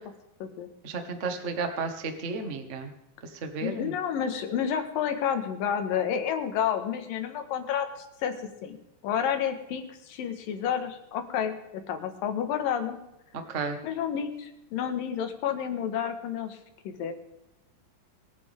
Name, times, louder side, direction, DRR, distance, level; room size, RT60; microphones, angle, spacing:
voice 1, 0.8-2.9 3.3-3.9 13.5-13.8, right 4 dB, 55° right, 6 dB, 0.8 m, -33 dB
voice 2, 3.6-7.9 8.2-8.3 8.6-8.8 9.0-13.0 13.8-16.6 16.8-17.1, left 8 dB, 75° left, 7 dB, 3.1 m, -30 dB
24.5 x 9.6 x 3.5 m, 0.93 s
omnidirectional pair, 4.1 m